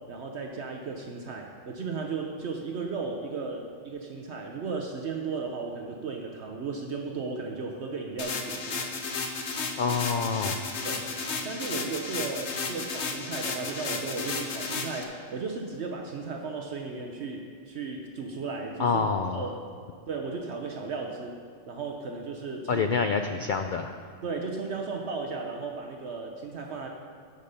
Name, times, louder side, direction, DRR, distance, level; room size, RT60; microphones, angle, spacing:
voice 1, 0.1-8.9 10.8-11.2 11.4-19.0 19.3-19.6 20.1-21.4 21.7-22.9 24.2-26.9, right 4 dB, 60° right, 2 dB, 1.0 m, -35 dB
sound 1, 8.2-15.0, left 4 dB, 60° left, 1.2 m, -33 dB
voice 2, 9.8-10.6 18.8-19.5 22.7-24.0, left 5 dB, 90° left, 7 dB, 0.4 m, -27 dB
14.0 x 5.1 x 5.5 m, 2.3 s
omnidirectional pair, 1.4 m